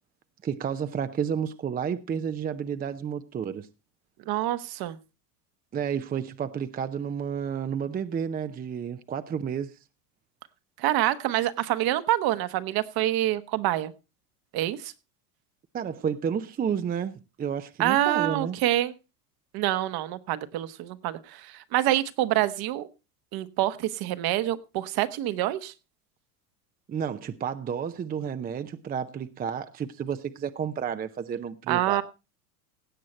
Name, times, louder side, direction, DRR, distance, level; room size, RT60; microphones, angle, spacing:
voice 1, 0.4-3.7 5.7-9.7 15.7-18.6 26.9-32.0, right 7 dB, 20° right, 0.6 m, -31 dB
voice 2, 4.3-5.0 10.8-13.9 14.5-14.9 17.8-18.9 19.5-22.9 23.3-25.7 31.7-32.0, right 14 dB, 50° right, 1.2 m, -26 dB
17.0 x 7.6 x 4.2 m
supercardioid pair, 100°, 47 cm